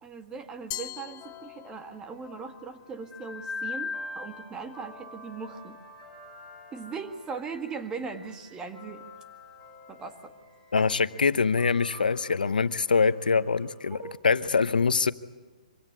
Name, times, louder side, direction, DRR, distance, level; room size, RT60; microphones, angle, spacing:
voice 1, 0.0-5.8 6.7-9.0 9.9-10.3 13.9-14.2, right 5 dB, 15° right, 7 dB, 1.7 m, -39 dB
Glass, 0.7-2.1, left 14 dB, 30° left, 1.0 m, -40 dB
sound 1, 1.2-13.9, left 3 dB, 10° left, 2.2 m, -44 dB
voice 2, 10.7-14.0 14.2-15.1, left 5 dB, 80° left, 14 dB, 0.9 m, -24 dB
25.0 x 16.5 x 9.8 m, 1.3 s
hypercardioid pair, 135°, 5 cm